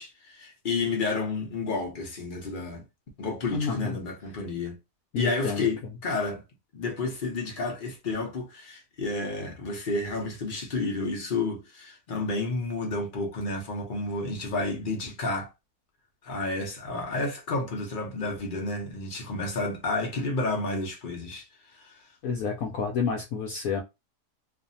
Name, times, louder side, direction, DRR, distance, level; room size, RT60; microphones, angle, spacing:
voice 1, 0.0-2.8 3.2-4.8 5.2-6.4 6.7-15.5 16.2-21.5 21.8-22.0, left 3 dB, 50° left, 0.6 m, -31 dB
voice 2, 3.5-3.9 5.1-5.7 22.2-23.8, left 5 dB, 70° left, 0.9 m, -29 dB
2.5 x 2.4 x 2.6 m
omnidirectional pair, 1.8 m